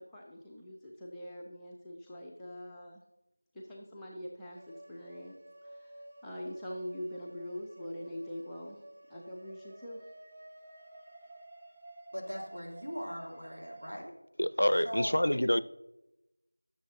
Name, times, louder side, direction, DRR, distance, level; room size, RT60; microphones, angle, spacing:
voice 1, 0.0-3.0 3.5-5.3 5.6-8.8 9.1-10.0, equal, 5° left, 0.4 m, -43 dB
sound 1, 4.5-13.9, right 1 dB, 30° right, 0.9 m, -53 dB
voice 2, 12.1-14.1 14.8-15.2, equal, 75° right, 3.0 m, -39 dB
voice 3, 14.4-15.6, left 1 dB, 65° left, 0.5 m, -27 dB
17.5 x 6.7 x 2.7 m
figure-of-eight pair, 175°, 0 cm